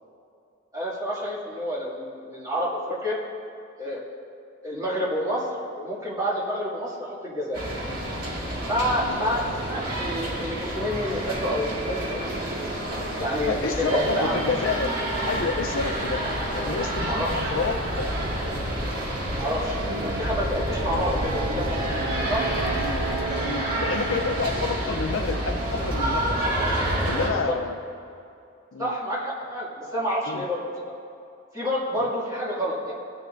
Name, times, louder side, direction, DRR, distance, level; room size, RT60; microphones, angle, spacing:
voice 1, 0.7-3.2 3.8-4.0 4.6-5.4 5.8-7.6 8.7-12.4 13.2-14.4 17.1-17.5 19.4-21.8 22.3-22.5 27.5-27.6 28.8-30.9 31.5-32.9, equal, 15° right, -7 dB, 2.2 m, -28 dB
sound 1, 7.5-27.3, right 1 dB, 45° right, 2.0 m, -29 dB
voice 2, 13.5-14.9 15.2-16.2 16.5-18.1 19.9-20.1 22.8-23.1 23.4-26.6 27.0-27.8 28.7-29.0 30.3-30.4 32.0-32.1, left 4 dB, 80° left, 7 dB, 0.6 m, -29 dB
sound 2, 15.2-23.2, left 1 dB, 45° left, 0.9 m, -34 dB
17.5 x 10.0 x 2.6 m, 2.6 s
head